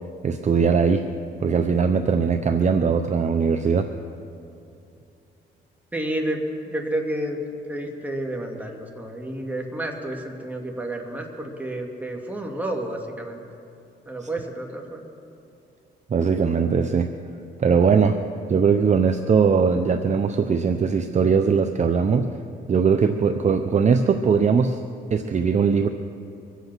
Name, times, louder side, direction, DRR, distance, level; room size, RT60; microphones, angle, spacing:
voice 1, 0.2-1.0 1.4-3.9 14.2-14.3 16.1-17.1 17.6-18.2 18.5-22.3 22.7-24.8 25.1-25.9, right 5 dB, 35° right, 7 dB, 0.7 m, -20 dB
voice 2, 5.9-7.4 7.7-13.4 14.1-15.1, right 1 dB, 10° right, 1 dB, 2.2 m, -30 dB
24.0 x 8.2 x 6.1 m, 2.6 s
cardioid pair, 90°, 20 cm